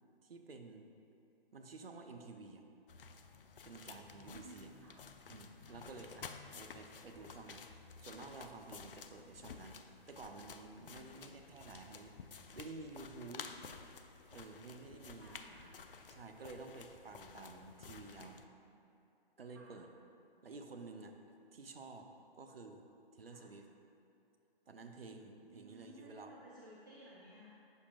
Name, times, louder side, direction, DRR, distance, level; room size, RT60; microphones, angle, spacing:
voice 1, 0.2-0.9 1.5-2.6 3.6-4.7 5.3-7.7 8.0-12.1 12.5-13.5 14.3-15.3 16.1-18.4 19.4-19.9 20.4-21.2 21.5-22.1 22.3-22.8 23.1-23.7 24.7-26.3, right 3 dB, 70° right, 4 dB, 0.7 m, -51 dB
sound 1, 2.9-18.4, left 5 dB, 65° left, 0.4 m, -53 dB
voice 2, 4.3-5.0 5.6-6.1 10.9-11.3 13.3-13.5 15.1-15.8 18.6-18.8 19.5-19.8 23.2-23.5 25.5-27.5, right 1 dB, 20° right, -6 dB, 0.4 m, -58 dB
8.2 x 6.5 x 2.4 m, 2.7 s
figure-of-eight pair, 135°, 30 cm